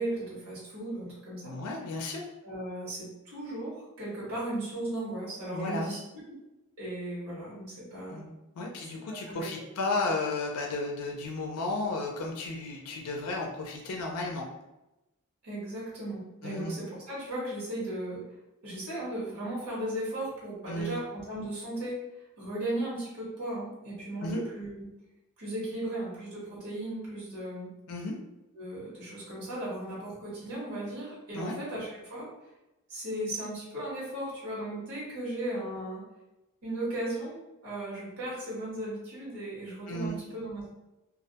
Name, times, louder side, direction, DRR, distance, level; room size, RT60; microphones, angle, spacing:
voice 1, 0.0-1.5 2.4-6.0 6.3-6.4 6.8-8.2 9.1-9.5 15.4-18.2 18.6-22.0 22.4-24.9 25.4-27.7 28.5-32.3 32.9-36.0 36.6-37.4 37.6-40.7, right 1 dB, 80° right, -7 dB, 1.1 m, -36 dB
voice 2, 1.5-2.2 5.5-5.9 8.1-8.3 8.6-14.5 16.4-16.7 20.7-21.0 24.2-24.4 27.9-28.2 31.3-31.6 39.9-40.2, left 2 dB, 85° left, 1 dB, 0.4 m, -33 dB
2.3 x 2.1 x 2.7 m, 0.97 s
head